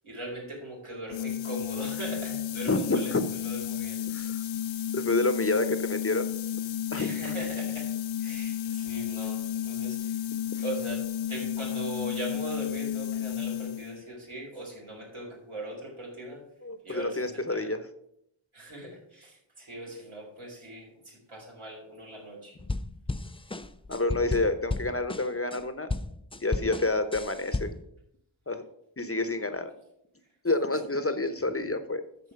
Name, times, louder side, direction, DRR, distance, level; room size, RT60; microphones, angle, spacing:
voice 1, 0.0-3.1 3.4-4.0 6.9-7.9 8.2-10.2 10.5-16.4 16.8-17.7 18.5-22.6, right 1 dB, 85° right, -3 dB, 4.3 m, -40 dB
sound 1, 1.1-14.0, left 10 dB, 70° left, 0.5 m, -32 dB
voice 2, 2.7-3.2 4.1-4.4 4.9-6.3 6.9-7.3 16.6-17.8 23.9-25.9 26.4-27.7 28.5-28.6 29.0-29.7 30.4-32.0, left 2 dB, 30° left, 10 dB, 0.9 m, -28 dB
sound 2, 22.6-25.6 25.9-27.9, left 2 dB, 15° left, 0.4 m, -33 dB
13.0 x 4.4 x 5.8 m, 0.76 s
wide cardioid pair, 65°, 48 cm